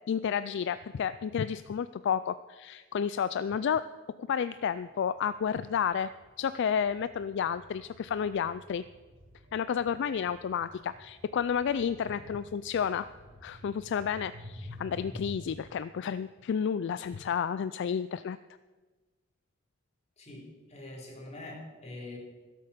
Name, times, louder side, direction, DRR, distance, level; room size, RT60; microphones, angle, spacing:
voice 1, 0.1-3.8 4.2-6.1 6.4-8.8 9.5-13.1 13.4-18.4, left 7 dB, 60° left, 14 dB, 0.3 m, -31 dB
sound 1, 4.9-15.6, left 1 dB, 55° right, 5.0 m, -50 dB
voice 2, 20.2-22.2, left 2 dB, 35° left, -1 dB, 3.2 m, -44 dB
16.0 x 8.5 x 6.7 m, 1.3 s
head